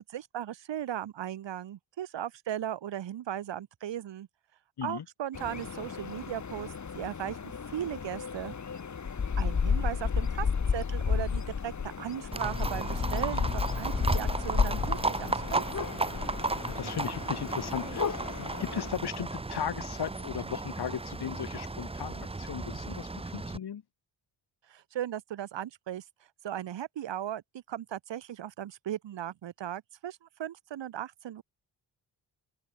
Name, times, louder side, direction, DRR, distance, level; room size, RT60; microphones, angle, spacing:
voice 1, 0.0-4.3 4.8-8.6 9.4-16.0 24.7-26.0 26.4-27.4 27.7-31.4, right 11 dB, 85° right, 4.1 m, -37 dB
sound 1, 5.3-18.9, left 6 dB, 40° left, 2.5 m, -32 dB
Livestock farm animals working animals, 12.3-23.6, right 3 dB, 15° right, 1.0 m, -34 dB
voice 2, 16.6-23.8, left 8 dB, 60° left, 3.0 m, -37 dB
open air
cardioid pair, 80°, 43 cm